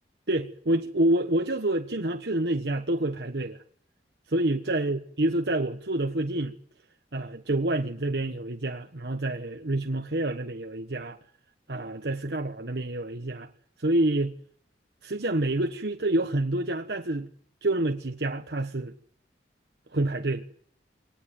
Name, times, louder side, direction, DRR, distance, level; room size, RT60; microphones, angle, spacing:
voice 1, 0.3-3.6 4.3-6.5 7.1-11.2 11.7-13.5 13.8-14.3 15.0-17.3 17.6-18.9 19.9-20.5, right 1 dB, 65° right, 1.3 m, -27 dB
24.5 x 19.0 x 9.4 m
head